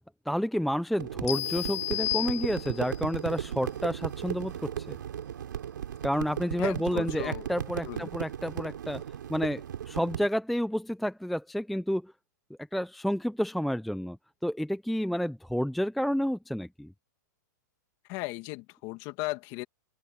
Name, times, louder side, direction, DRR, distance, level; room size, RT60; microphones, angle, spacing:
voice 1, 0.3-5.0 6.0-9.0 9.3-12.1 12.7-14.2 14.4-16.9, equal, ahead, 0.4 m, -30 dB
sound 1, 1.0-10.3, right 9 dB, 90° right, 4.3 m, -36 dB
sound 2, 1.3-3.0, left 15 dB, 55° left, 2.1 m, -32 dB
voice 2, 6.6-7.5 7.8-8.1 18.1-19.6, left 22 dB, 35° left, 2.1 m, -36 dB
open air
hypercardioid pair, 155°, 10 cm